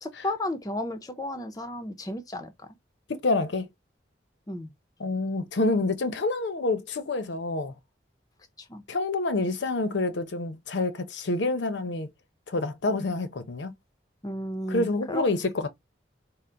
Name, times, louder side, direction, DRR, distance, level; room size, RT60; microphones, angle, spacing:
voice 1, 0.0-2.7 4.5-4.7 8.6-8.8 14.2-15.3, left 1 dB, 20° left, 0.5 m, -33 dB
voice 2, 3.1-3.7 5.0-7.7 8.9-12.1 12.5-13.7 14.7-15.7, left 2 dB, 75° left, 0.6 m, -27 dB
3.7 x 2.0 x 4.4 m
head